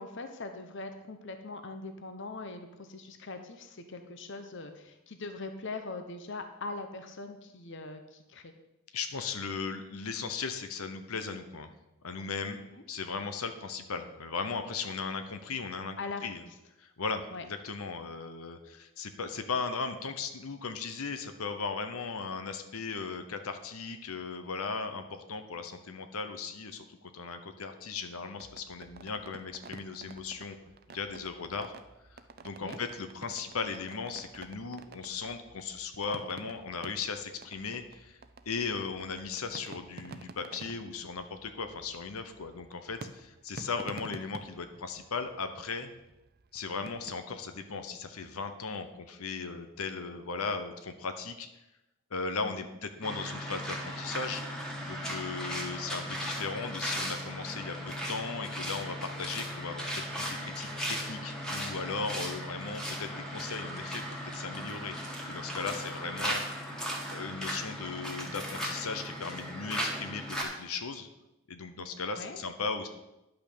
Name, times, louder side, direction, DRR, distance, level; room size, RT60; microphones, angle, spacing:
voice 1, 0.0-8.5 12.6-12.8 16.0-16.3 17.3-17.4 32.6-32.8 52.4-52.7 72.2-72.4, left 3 dB, 55° left, 7 dB, 0.9 m, -41 dB
voice 2, 8.9-11.7 12.0-12.6 12.9-16.4 16.8-30.6 30.9-31.7 32.1-38.2 38.5-45.9 46.5-51.5 52.1-54.4 54.8-64.0 64.3-66.4 67.1-71.1 71.5-72.9, left 4 dB, 80° left, 8 dB, 0.9 m, -37 dB
sound 1, 28.4-47.8, right 3 dB, 45° right, 0.6 m, -50 dB
sound 2, 53.0-70.4, equal, 5° left, 1.7 m, -37 dB
10.5 x 5.8 x 6.7 m, 0.94 s
head